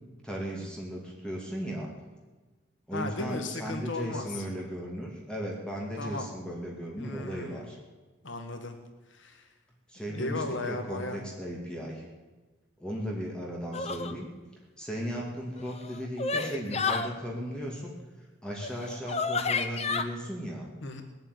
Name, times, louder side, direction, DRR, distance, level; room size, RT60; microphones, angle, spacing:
voice 1, 0.2-1.9 2.9-7.8 9.9-12.0 12.8-14.3 14.8-17.9 18.4-20.7, equal, 5° left, -2 dB, 2.4 m, -36 dB
voice 2, 2.9-4.4 6.0-6.3 7.0-7.6 8.2-8.7 9.1-9.5 10.0-11.2 20.8-21.0, left 2 dB, 75° left, 5 dB, 1.7 m, -36 dB
sound 1, 13.7-14.2 15.6-17.1 18.6-18.7 19.1-20.0, left 4 dB, 35° left, 0.9 m, -30 dB
20.0 x 7.9 x 9.2 m, 1.2 s
head